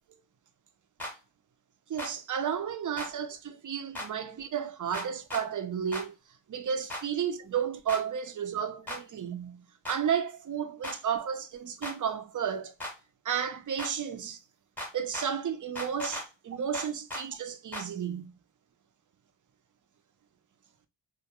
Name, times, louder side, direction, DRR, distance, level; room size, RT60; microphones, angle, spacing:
sound 1, 1.0-1.1 2.0-2.1 3.0-3.1 3.9-4.1 4.9-5.4 5.9-6.1 6.9-7.0 7.9-8.0 8.9-9.0 9.8-10.0 10.8-11.0 11.8-12.0 12.8-12.9 13.8-13.9 14.8-15.3 15.8-16.3 16.7-17.2 17.7-17.9, left 1 dB, 5° left, 0.8 m, -37 dB
voice 1, 1.9-6.2 6.5-9.6 9.9-12.7 13.2-14.4 14.9-18.3, right 8 dB, 45° right, 0.4 m, -32 dB
2.2 x 2.1 x 2.8 m
wide cardioid pair, 90°, 48 cm